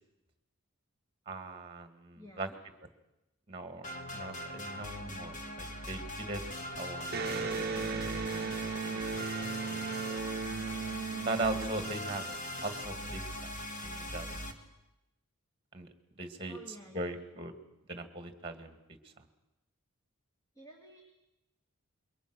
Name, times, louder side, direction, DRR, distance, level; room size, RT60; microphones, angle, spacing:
voice 1, 1.3-2.5 3.5-6.4 6.8-7.2 11.3-12.3 12.6-13.5 13.8-14.4 15.7-15.9 16.2-16.6 16.9-17.5 17.9-18.8 19.2-19.3, right 2 dB, 25° right, 8 dB, 1.9 m, -39 dB
voice 2, 2.2-2.6 16.5-17.2 20.5-21.0, equal, 15° left, 1 dB, 2.3 m, -52 dB
sound 1, 3.8-14.5, left 1 dB, 35° left, 2.0 m, -41 dB
Electric guitar, 7.1-12.6, right 5 dB, 45° right, 0.9 m, -36 dB
27.0 x 22.5 x 6.2 m, 0.95 s
head